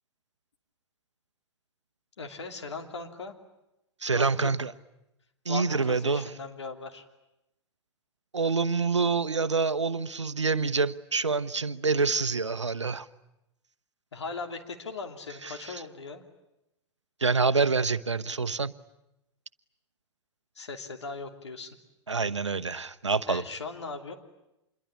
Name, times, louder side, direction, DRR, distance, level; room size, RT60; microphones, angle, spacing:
voice 1, 2.2-3.3 4.1-4.5 5.5-7.0 14.1-16.2 20.5-21.8 23.3-24.1, left 4 dB, 70° left, 5 dB, 3.0 m, -38 dB
voice 2, 4.0-4.7 5.5-6.2 8.3-13.1 15.4-15.8 17.2-18.7 22.1-23.4, right 4 dB, 80° right, 15 dB, 0.9 m, -27 dB
27.0 x 22.0 x 10.0 m, 0.89 s
figure-of-eight pair, 105°, 15 cm